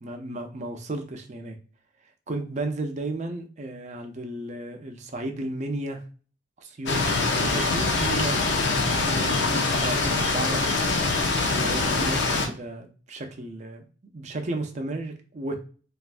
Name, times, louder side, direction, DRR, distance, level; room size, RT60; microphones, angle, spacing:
voice 1, 0.0-1.6 2.3-6.0 6.6-7.0 7.3-8.4 8.7-13.8 14.1-15.6, right 2 dB, 35° right, 5 dB, 0.5 m, -34 dB
sound 1, 6.8-12.5, left 3 dB, 60° left, 0.5 m, -24 dB
3.3 x 2.4 x 2.4 m, 0.39 s
head